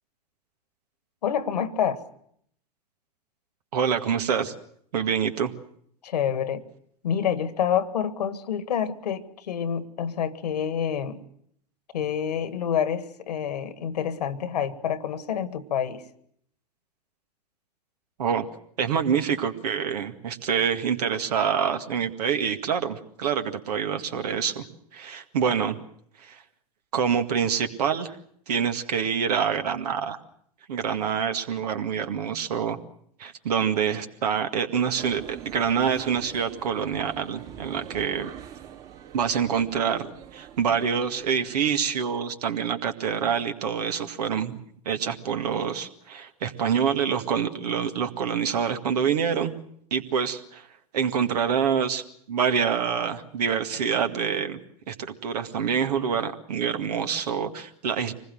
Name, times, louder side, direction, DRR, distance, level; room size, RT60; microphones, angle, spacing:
voice 1, 1.2-2.0 6.0-6.6 7.0-11.2 11.9-16.0, left 8 dB, 75° left, 13 dB, 1.8 m, -27 dB
voice 2, 3.7-4.5 4.9-5.5 18.2-18.5 18.8-25.8 26.2-26.4 26.9-28.2 28.5-30.2 30.7-32.8 33.2-38.4 39.1-49.5 49.9-50.7 50.9-54.6 54.9-58.1, right 7 dB, 70° right, 7 dB, 2.0 m, -26 dB
sound 1, 35.0-42.4, right 10 dB, 55° right, 4.3 m, -44 dB
25.5 x 20.5 x 7.7 m, 0.67 s
hypercardioid pair, 90°, 21 cm